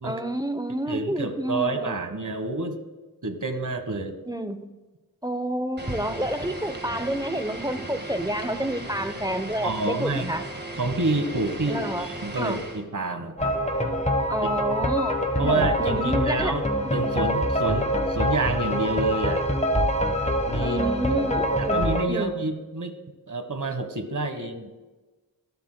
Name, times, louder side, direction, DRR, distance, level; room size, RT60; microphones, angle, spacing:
voice 1, 0.0-1.9 4.3-4.7 5.2-10.4 11.7-12.1 12.4-12.6 14.3-16.6 16.8-17.2 20.6-22.4, right 1 dB, 10° right, 10 dB, 0.8 m, -29 dB
voice 2, 0.9-2.8 3.2-4.2 9.6-10.4 10.8-13.6 14.4-14.5 15.4-16.6 16.9-19.5 20.5-20.8 21.1-21.3 21.6-22.9 23.3-24.7, right 2 dB, 55° right, 7 dB, 1.4 m, -28 dB
sound 1, 5.8-12.8, right 1 dB, 30° right, 1.7 m, -36 dB
sound 2, 13.4-22.0, equal, 20° left, 1.3 m, -25 dB
20.5 x 12.0 x 2.2 m, 1.2 s
wide cardioid pair, 45°, 37 cm